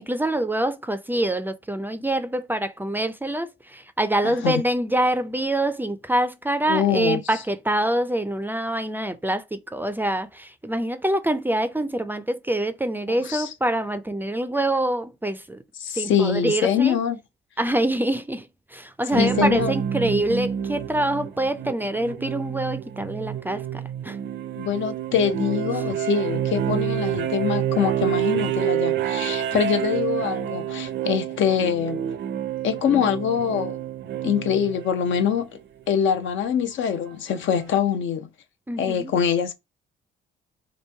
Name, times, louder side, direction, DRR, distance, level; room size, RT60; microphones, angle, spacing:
voice 1, 0.0-15.6 15.9-17.0 17.6-24.2 38.7-39.1, right 1 dB, 10° right, 0.4 m, -25 dB
voice 2, 4.2-4.6 6.7-7.2 13.1-13.5 15.8-17.2 19.1-19.7 24.6-32.0 32.6-33.8 34.2-35.6 35.9-38.3 38.8-39.5, left 8 dB, 75° left, 0.7 m, -24 dB
sound 1, 19.1-35.4 36.9-37.0, right 10 dB, 65° right, 0.5 m, -28 dB
3.0 x 2.6 x 4.4 m
cardioid pair, 90°, 20 cm